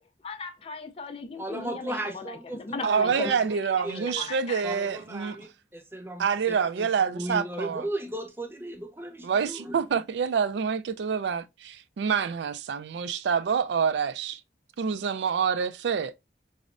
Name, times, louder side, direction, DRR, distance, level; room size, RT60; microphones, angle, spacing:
voice 1, 0.2-3.3 3.9-4.6, left 4 dB, 30° left, 0.3 m, -37 dB
voice 2, 1.4-3.6 3.8-4.3 4.6-9.8, right 1 dB, 10° right, 0.6 m, -36 dB
voice 3, 2.8-5.4 6.2-7.9 9.2-14.4 14.8-16.1, right 6 dB, 75° right, 0.3 m, -27 dB
5.1 x 2.0 x 2.4 m
head